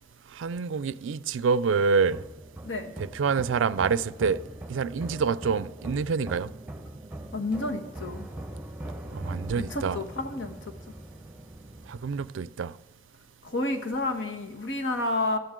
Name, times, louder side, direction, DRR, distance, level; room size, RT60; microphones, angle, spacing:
voice 1, 0.3-2.2 3.0-4.4 4.7-6.5 9.1-10.0 11.9-12.7, right 5 dB, 75° right, 0.4 m, -27 dB
sound 1, 2.0-12.3, right 1 dB, 5° right, 0.8 m, -41 dB
voice 2, 7.3-8.3 9.6-10.6 13.4-15.4, left 2 dB, 70° left, 1.4 m, -30 dB
16.5 x 13.5 x 3.8 m
head